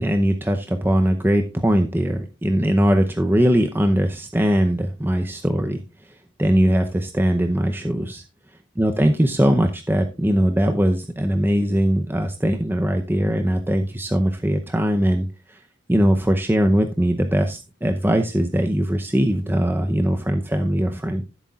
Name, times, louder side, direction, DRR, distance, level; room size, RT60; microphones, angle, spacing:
voice 1, 0.0-5.8 6.4-8.2 8.8-15.6 15.9-21.2, equal, 10° right, 5 dB, 0.6 m, -20 dB
14.0 x 8.1 x 2.4 m, 0.30 s
head